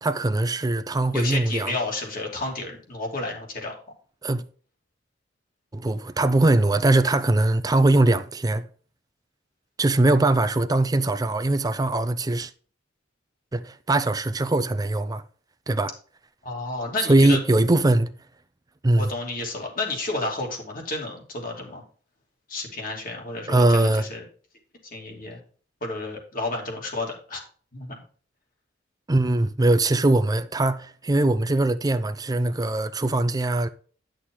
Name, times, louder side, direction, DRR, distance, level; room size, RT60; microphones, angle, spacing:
voice 1, 0.0-1.8 4.2-4.4 5.7-8.6 9.8-12.5 13.5-15.2 15.7-15.9 17.1-18.1 18.8-19.1 23.5-24.1 29.1-33.7, right 2 dB, 20° right, 0.5 m, -21 dB
voice 2, 1.1-3.7 16.4-17.4 18.9-21.8 22.5-24.2 24.8-25.4 25.8-27.4 27.7-28.0, left 2 dB, 45° left, 2.8 m, -31 dB
10.5 x 6.4 x 3.8 m
head